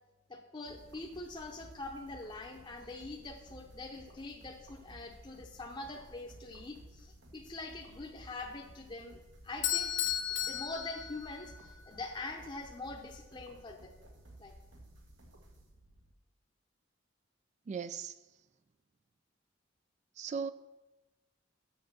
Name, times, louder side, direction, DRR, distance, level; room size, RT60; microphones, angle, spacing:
voice 1, 0.3-9.2 9.4-9.9 10.4-13.9 14.4-14.5, left 2 dB, 25° left, 0.7 m, -44 dB
sound 1, 0.7-16.1, right 1 dB, 85° right, 1.7 m, -56 dB
Bell / Doorbell, 9.6-11.7, left 10 dB, 90° left, 1.3 m, -34 dB
voice 2, 17.7-18.1 20.2-20.5, right 6 dB, 40° right, 0.3 m, -37 dB
7.3 x 6.8 x 6.2 m
head